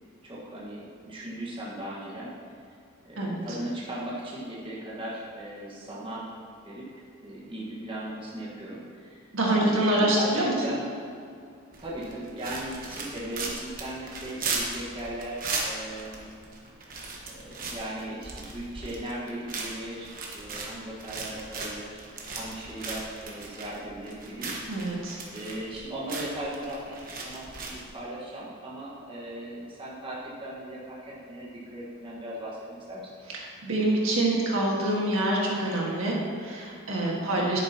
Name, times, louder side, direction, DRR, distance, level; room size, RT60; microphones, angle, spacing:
voice 1, 0.2-2.6 3.0-6.3 6.6-9.3 9.5-9.7 9.9-10.9 11.8-16.3 17.3-22.0 22.3-24.6 25.3-32.6 32.9-33.1 37.2-37.5, right 1 dB, 25° right, -6 dB, 1.5 m, -38 dB
voice 2, 9.3-10.5 24.7-25.2 33.6-37.6, right 1 dB, 65° right, -3 dB, 1.7 m, -25 dB
sound 1, 11.7-27.9, right 3 dB, 40° right, 1.2 m, -37 dB
10.5 x 8.9 x 2.9 m, 2.3 s
head